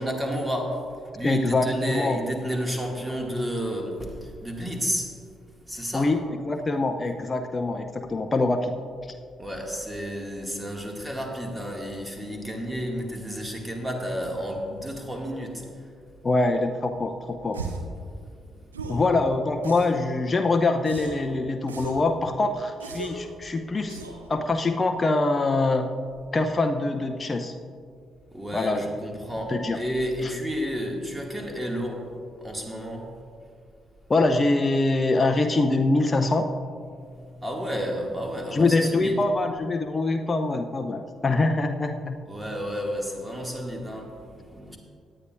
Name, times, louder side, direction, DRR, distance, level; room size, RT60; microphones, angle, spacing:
voice 1, 0.0-5.1 5.7-6.2 9.4-15.9 18.4-19.0 28.3-33.2 37.0-39.2 42.3-44.8, equal, 10° right, 1 dB, 2.1 m, -31 dB
voice 2, 1.2-2.2 5.9-8.7 16.2-17.6 18.9-24.0 24.3-25.9 26.3-27.5 28.5-28.8 29.5-29.8 30.2-30.3 34.1-36.5 38.5-42.1, left 2 dB, 30° left, 6 dB, 0.7 m, -24 dB
sound 1, 17.5-17.9 18.7-19.1 19.6-20.1 20.9-21.3 21.7-22.1 22.8-23.3 23.9-24.3, right 3 dB, 85° right, 0.8 m, -36 dB
17.5 x 10.0 x 2.6 m, 2.2 s
figure-of-eight pair, 40°, 0 cm